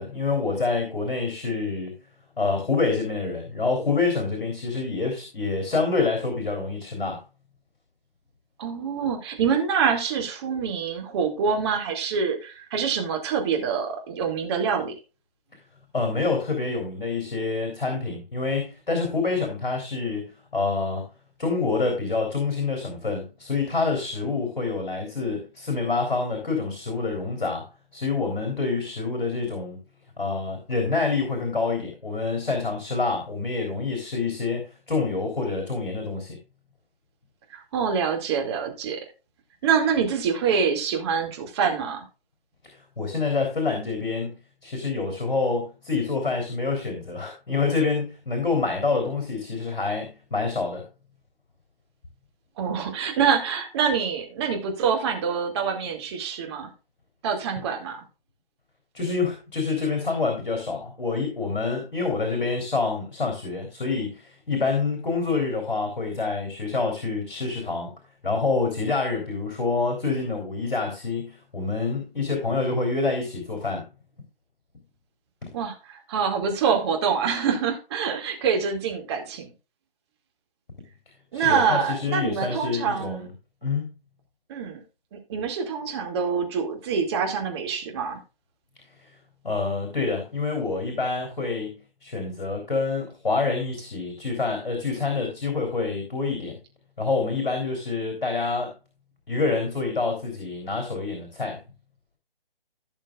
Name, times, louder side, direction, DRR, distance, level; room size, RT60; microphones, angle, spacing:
voice 1, 0.0-1.9 2.4-7.2 15.9-21.0 21.4-27.7 27.9-29.8 30.2-36.4 42.6-44.4 44.6-50.8 58.9-67.9 68.2-73.8 81.3-83.3 83.6-83.9 89.0-89.1 89.4-96.6 97.0-98.7 99.3-101.6, left 4 dB, 60° left, 3 dB, 3.5 m, -27 dB
voice 2, 8.6-14.9 37.5-39.0 39.6-42.0 52.6-56.7 57.2-58.0 75.5-79.5 81.3-83.3 84.5-84.8 85.1-88.2, right 6 dB, 25° right, 2 dB, 2.4 m, -25 dB
16.0 x 6.3 x 2.4 m, 0.31 s
figure-of-eight pair, 140°, 29 cm